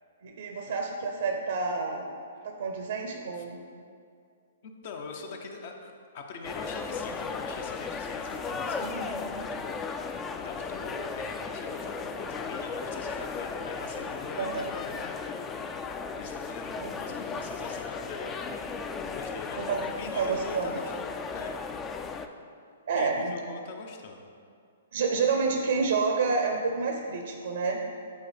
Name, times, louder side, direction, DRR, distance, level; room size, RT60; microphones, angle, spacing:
voice 1, 0.2-2.1 2.4-3.6 8.8-9.2 14.4-14.6 16.8-16.9 19.6-19.8 20.1-20.8 22.9-23.3 24.9-27.8, right 4 dB, 70° right, 3 dB, 0.6 m, -29 dB
voice 2, 4.6-15.5 16.2-18.8 19.0-20.9 21.3-21.6 22.9-24.3, left 4 dB, 50° left, 3 dB, 0.7 m, -42 dB
sound 1, 6.4-22.3, left 4 dB, 20° left, 0.3 m, -36 dB
8.4 x 4.0 x 3.3 m, 2.3 s
hypercardioid pair, 125°, 0 cm